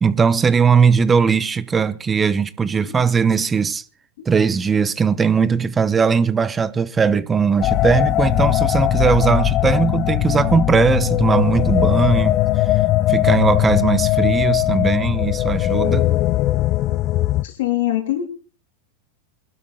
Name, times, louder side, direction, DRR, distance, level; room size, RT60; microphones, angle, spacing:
voice 1, 0.0-3.8 4.2-12.4 13.1-16.2, right 6 dB, 20° right, 0.9 m, -19 dB
sound 1, 7.6-17.4, left 15 dB, 40° left, 0.7 m, -19 dB
voice 2, 17.4-18.2, left 14 dB, 70° left, 3.2 m, -22 dB
21.5 x 12.0 x 4.0 m
hypercardioid pair, 110°, 0 cm